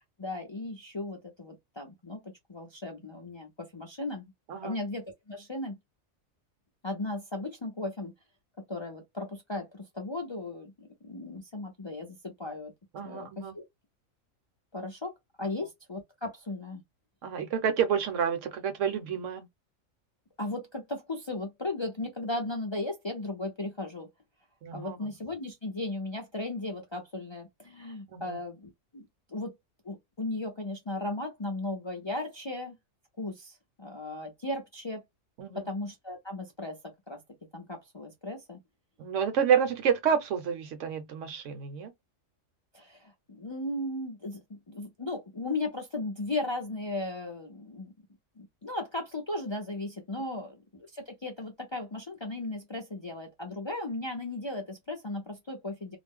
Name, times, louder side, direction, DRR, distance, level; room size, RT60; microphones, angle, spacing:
voice 1, 0.0-4.3 4.6-5.7 6.8-8.1 8.7-12.7 13.0-13.6 14.7-16.8 20.4-24.1 24.7-29.5 29.8-32.8 33.2-35.0 35.5-37.2 37.5-38.6 42.7-47.9 48.4-56.0, left 2 dB, 50° left, 0.3 m, -36 dB
voice 2, 12.9-13.5 17.2-19.5 24.6-25.0 28.1-28.4 35.4-35.7 39.0-41.9, right 7 dB, 75° right, 1.0 m, -29 dB
2.4 x 2.0 x 3.5 m
omnidirectional pair, 1.4 m